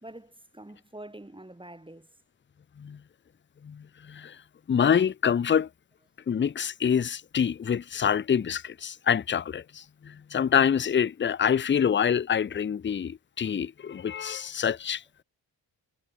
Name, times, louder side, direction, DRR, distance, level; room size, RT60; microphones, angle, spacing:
voice 1, 0.0-2.1, right 1 dB, 10° right, 2.4 m, -45 dB
voice 2, 3.6-4.4 4.7-5.7 6.3-15.0, left 8 dB, 30° left, 0.5 m, -26 dB
cardioid pair, 65°, 42 cm